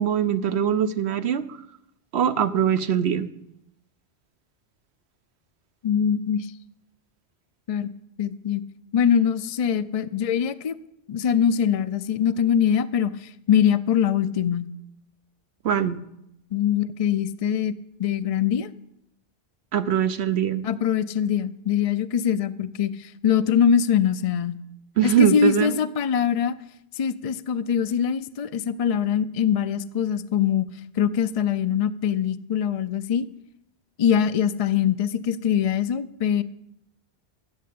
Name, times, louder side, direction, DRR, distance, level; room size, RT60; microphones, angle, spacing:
voice 1, 0.0-1.6 2.1-3.3 15.6-16.0 19.7-20.6 25.0-25.8, right 9 dB, 80° right, 11 dB, 1.0 m, -22 dB
voice 2, 5.8-6.5 7.7-7.9 8.2-8.6 8.9-10.8 11.1-14.7 16.5-17.7 18.0-18.7 20.6-24.6 25.0-26.6 26.9-30.7 31.0-33.3 34.0-36.4, left 8 dB, 45° left, 11 dB, 0.5 m, -23 dB
14.0 x 7.5 x 8.5 m, 0.79 s
omnidirectional pair, 1.1 m